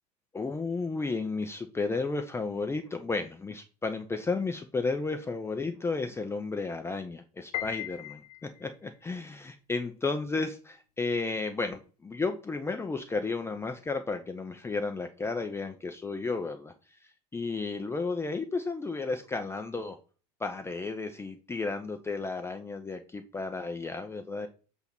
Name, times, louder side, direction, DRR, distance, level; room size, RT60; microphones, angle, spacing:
voice 1, 0.3-16.7 17.3-20.0 20.4-24.5, left 3 dB, 10° left, 7 dB, 0.6 m, -33 dB
Piano, 7.5-8.8, left 14 dB, 65° left, 0.6 m, -37 dB
8.0 x 2.7 x 5.9 m, 0.36 s
figure-of-eight pair, 75°, 21 cm